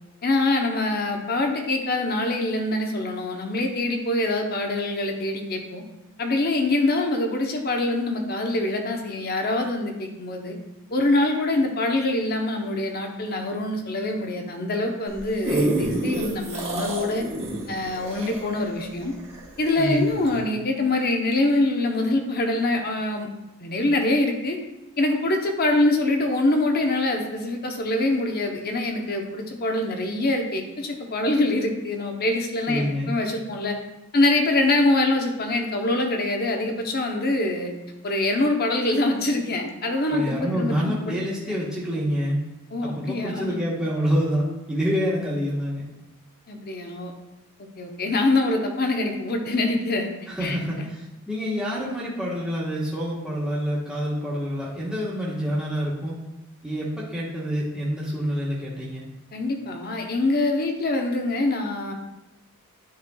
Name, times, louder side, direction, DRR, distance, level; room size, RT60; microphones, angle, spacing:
voice 1, 0.2-5.8 6.2-10.6 10.9-17.2 17.7-19.1 19.6-23.3 23.6-24.6 25.0-33.7 34.1-37.7 38.0-41.1 42.7-43.6 46.5-47.1 47.8-50.1 50.4-50.6 59.3-61.9, left 2 dB, 45° left, 3 dB, 0.8 m, -24 dB
sound 1, 15.1-19.7 20.3-20.4, right 2 dB, 30° right, 1.2 m, -27 dB
voice 2, 19.8-20.3 32.7-33.1 40.1-42.4 42.8-45.8 50.3-51.0 51.3-56.1 56.6-59.1, equal, 5° right, -8 dB, 1.2 m, -27 dB
10.5 x 4.3 x 2.3 m, 0.96 s
head